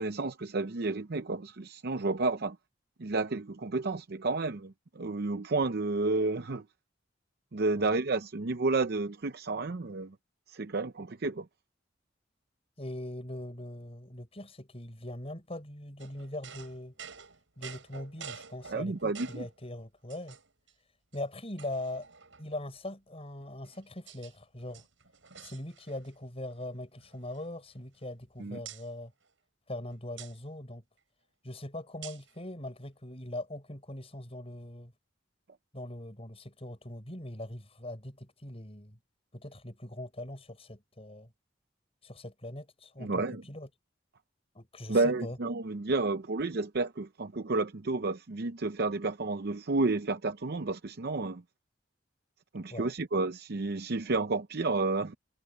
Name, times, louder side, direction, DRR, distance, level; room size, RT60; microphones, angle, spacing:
voice 1, 0.0-2.6 3.0-6.6 7.5-10.1 10.5-11.5 18.7-19.4 28.4-28.6 43.0-43.4 44.9-51.4 52.5-55.1, right 3 dB, 55° right, 0.7 m, -31 dB
voice 2, 12.8-17.0 17.6-20.4 21.1-22.1 22.4-24.9 25.4-29.1 29.7-30.8 31.4-34.9 35.7-39.0 39.3-41.3 42.0-43.7 44.6-45.4 52.7-52.9, left 1 dB, 30° left, 6.7 m, -41 dB
sound 1, 16.0-19.6 20.1-20.7 21.1-21.2 21.6-22.6 23.4-24.3 24.6-26.2 26.4-26.7 27.0-28.3 28.6-28.9 30.2-30.3 32.0-32.3, right 7 dB, 85° right, 5.8 m, -49 dB
head